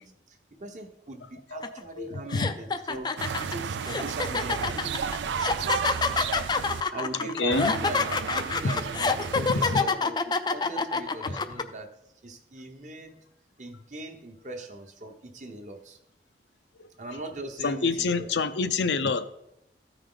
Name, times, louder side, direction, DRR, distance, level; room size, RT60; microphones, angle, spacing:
voice 1, 0.0-3.1 3.5-5.1 6.5-11.9 12.2-13.2 13.6-16.0 17.0-18.5, right 2 dB, 40° right, 4 dB, 1.0 m, -40 dB
voice 2, 1.5-2.5 7.2-7.7 8.6-8.8 9.6-9.8 11.3-11.4 16.8-16.9 17.6-19.3, left 4 dB, 75° left, 9 dB, 0.6 m, -28 dB
sound 1, 1.6-1.8 2.3-11.6, left 4 dB, 25° left, 0.4 m, -27 dB
sound 2, 3.2-6.8 7.5-9.8, right 6 dB, 85° right, 0.4 m, -32 dB
14.0 x 5.0 x 3.9 m, 0.81 s
head